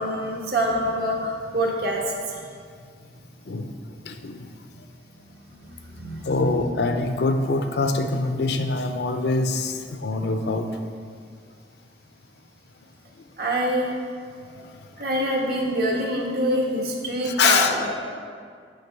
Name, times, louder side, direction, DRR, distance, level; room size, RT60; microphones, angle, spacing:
voice 1, 0.0-2.4 5.4-6.5 13.4-14.0 15.0-17.9, right 1 dB, 60° right, -2 dB, 1.3 m, -26 dB
voice 2, 4.0-4.5 6.2-10.8 17.2-17.7, left 3 dB, 65° left, 7 dB, 0.5 m, -24 dB
9.7 x 3.9 x 5.4 m, 2.1 s
head